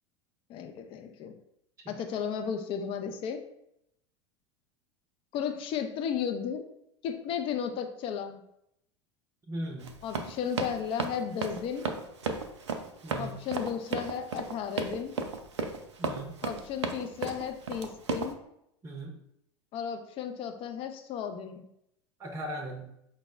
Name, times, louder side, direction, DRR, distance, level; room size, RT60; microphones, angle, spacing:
voice 1, 0.5-1.3 1.9-3.4 5.3-6.7 7.0-8.4 10.0-11.8 13.1-15.1 16.4-18.4 19.7-21.7, left 7 dB, 35° left, 7 dB, 0.5 m, -34 dB
voice 2, 9.5-9.9 13.0-13.3 16.0-16.4 18.8-19.1 22.2-22.9, right 1 dB, 20° right, 3 dB, 0.6 m, -38 dB
Run, 9.8-18.3, right 5 dB, 75° right, 0.4 m, -34 dB
5.2 x 2.0 x 3.2 m, 0.78 s
figure-of-eight pair, 80°, 15 cm